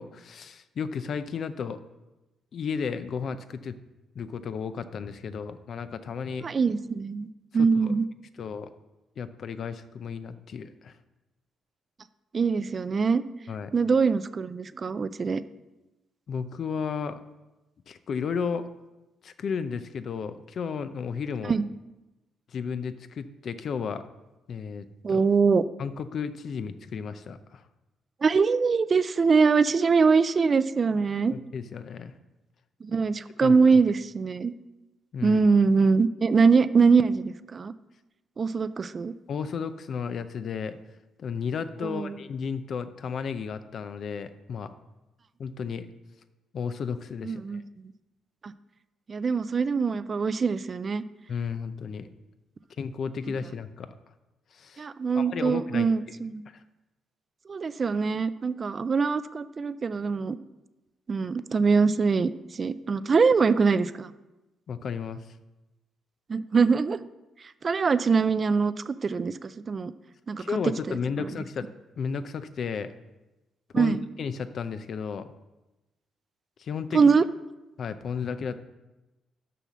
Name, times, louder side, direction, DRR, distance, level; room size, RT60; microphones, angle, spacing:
voice 1, 0.0-1.8 2.5-3.8 4.1-6.5 7.5-7.9 8.4-8.7 9.2-11.0 13.5-13.7 16.3-17.2 17.9-18.7 19.2-21.5 22.5-24.0 24.5-25.2 25.8-27.6 31.3-32.1 33.4-33.6 35.1-35.4 39.3-40.8 41.2-44.7 45.4-45.9 46.5-47.6 51.3-52.1 52.8-53.9 54.5-54.9 55.1-55.9 56.5-56.6 64.7-65.2 70.4-71.7 72.0-72.9 73.7-75.3 76.6-77.0 77.8-78.6, left 6 dB, 55° left, 12 dB, 0.6 m, -33 dB
voice 2, 6.4-7.3 7.5-8.1 12.3-13.2 13.7-15.4 21.5-21.6 25.0-25.6 28.2-31.3 32.8-34.5 35.2-37.7 38.4-39.1 41.8-42.1 47.2-47.6 49.1-51.0 54.8-56.4 57.5-60.4 61.1-64.1 66.3-67.0 67.6-69.9 70.3-70.4 70.9-71.3 73.7-74.0 76.9-77.2, right 5 dB, 40° right, 15 dB, 0.4 m, -23 dB
6.8 x 5.8 x 6.2 m, 1.0 s
cardioid pair, 90°, 0 cm